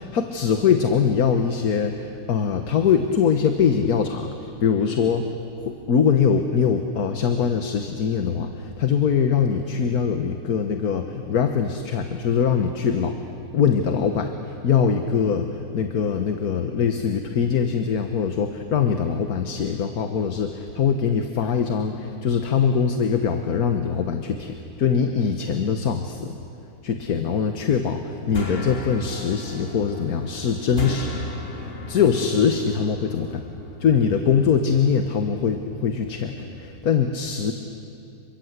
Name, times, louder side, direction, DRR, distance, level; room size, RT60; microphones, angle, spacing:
voice 1, 0.0-5.3 5.6-13.1 13.5-26.3 26.8-31.2 31.5-33.4 33.8-37.5, left 6 dB, 80° left, 5 dB, 1.7 m, -22 dB
sound 1, 27.9-36.6, left 1 dB, 40° left, 2.1 m, -35 dB
28.5 x 24.0 x 8.2 m, 2.6 s
omnidirectional pair, 1.6 m